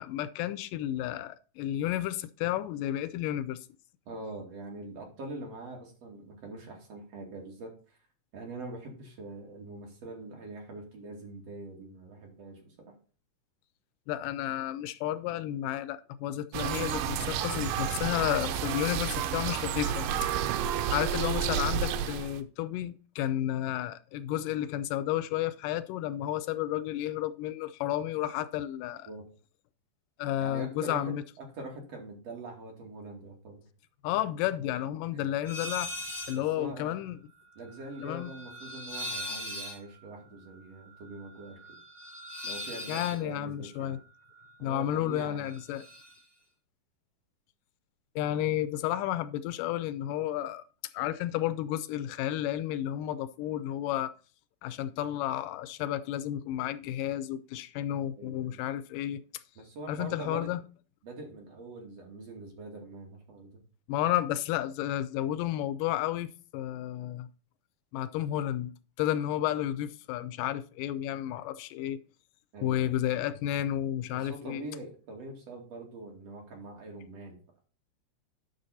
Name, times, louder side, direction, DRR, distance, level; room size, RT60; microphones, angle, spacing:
voice 1, 0.0-3.7 14.1-20.1 20.9-29.1 30.2-31.2 34.0-35.9 36.3-37.2 38.0-38.3 42.9-44.0 44.6-45.9 48.2-50.6 50.9-54.1 54.6-59.2 59.9-60.6 63.9-67.3 67.9-68.7 69.0-72.0 72.6-74.7, left 12 dB, 90° left, 2.3 m, -32 dB
voice 2, 4.1-8.0 8.3-12.9 21.4-21.6 29.1-29.2 30.4-33.6 35.1-35.3 36.3-37.0 37.6-41.6 42.4-44.0 44.6-45.5 58.2-58.6 59.6-60.5 61.0-63.6 72.5-72.9 74.1-77.4, right 2 dB, 50° right, 3.5 m, -43 dB
sound 1, 16.5-22.4, right 8 dB, 85° right, 2.4 m, -31 dB
sound 2, 35.4-36.4 36.7-44.9 45.2-46.2, left 1 dB, 35° left, 5.4 m, -42 dB
9.5 x 6.6 x 4.1 m
omnidirectional pair, 3.7 m